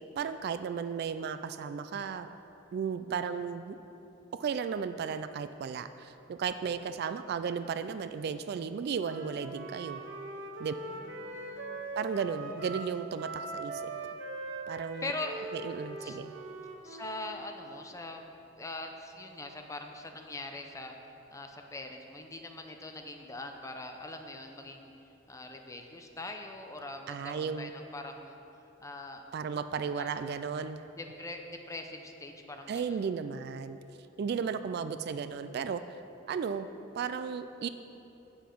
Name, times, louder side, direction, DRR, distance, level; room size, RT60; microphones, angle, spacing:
voice 1, 0.2-2.3 2.7-3.8 4.4-10.0 10.6-10.7 12.0-13.8 14.7-15.1 15.5-16.3 27.1-27.7 29.3-30.8 32.7-33.8 34.2-36.0 36.3-36.7 36.9-37.7, right 6 dB, 55° right, 11 dB, 0.3 m, -34 dB
Wind instrument woodwind instrument, 9.0-17.4, right 2 dB, 75° right, 0.8 m, -41 dB
voice 2, 10.8-11.8 15.0-15.5 16.0-16.2 16.8-20.9 21.3-24.9 25.3-28.4 28.8-29.3 30.0-30.1 31.0-33.0, left 2 dB, 15° left, 4 dB, 0.6 m, -42 dB
8.8 x 7.1 x 4.5 m, 2.9 s
head